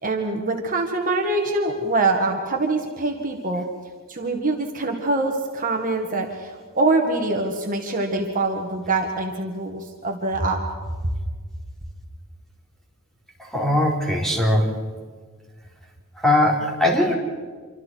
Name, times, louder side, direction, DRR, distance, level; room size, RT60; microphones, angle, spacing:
voice 1, 0.0-3.6 4.1-10.6, right 2 dB, 40° right, 1 dB, 1.9 m, -24 dB
voice 2, 13.5-14.8 16.2-17.1, left 1 dB, ahead, -2 dB, 3.9 m, -20 dB
27.5 x 25.0 x 4.7 m, 1.5 s
head